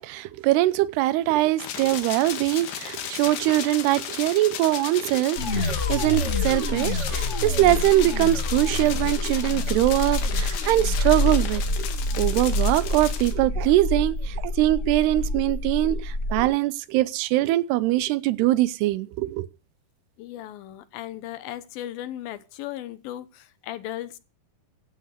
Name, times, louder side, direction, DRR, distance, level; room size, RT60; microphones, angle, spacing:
voice 1, 0.0-11.9 12.2-19.5, right 16 dB, 90° right, 2.9 m, -23 dB
sound 1, 1.6-13.3, left 9 dB, 90° left, 3.9 m, -35 dB
sound 2, 5.4-16.4, left 2 dB, 40° left, 1.0 m, -27 dB
voice 2, 20.2-24.2, left 13 dB, 70° left, 2.7 m, -36 dB
16.0 x 8.3 x 6.6 m
omnidirectional pair, 4.6 m